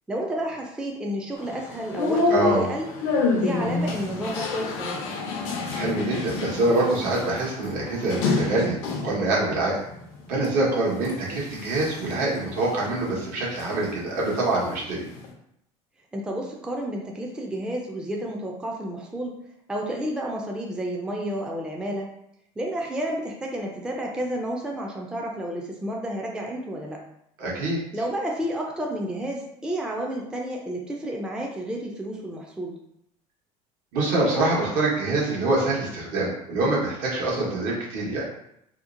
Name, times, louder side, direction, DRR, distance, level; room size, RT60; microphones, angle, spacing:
voice 1, 0.1-2.9 3.3-5.2 16.1-19.4 19.7-22.1 22.6-27.0 27.9-32.8, right 1 dB, 5° right, 0 dB, 0.4 m, -31 dB
sound 1, 1.4-9.2 9.7-10.5 10.9-13.8 14.1-15.3, left 3 dB, 80° left, 0.5 m, -29 dB
voice 2, 2.3-2.6 5.7-8.8 9.0-9.8 10.3-15.0 27.4-27.8 33.9-38.3, right 2 dB, 70° right, -5 dB, 1.1 m, -25 dB
2.8 x 2.0 x 2.5 m, 0.76 s
supercardioid pair, 105°, 15 cm